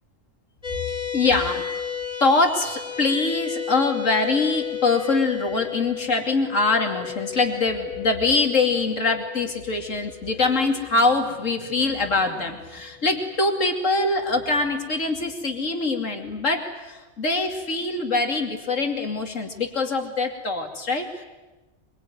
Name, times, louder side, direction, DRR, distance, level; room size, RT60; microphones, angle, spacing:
sound 1, 0.6-13.3, left 8 dB, 25° left, 2.7 m, -34 dB
voice 1, 1.1-1.7 2.2-21.2, left 3 dB, 70° left, 4 dB, 3.1 m, -23 dB
25.0 x 23.5 x 9.4 m, 1.1 s
omnidirectional pair, 1.4 m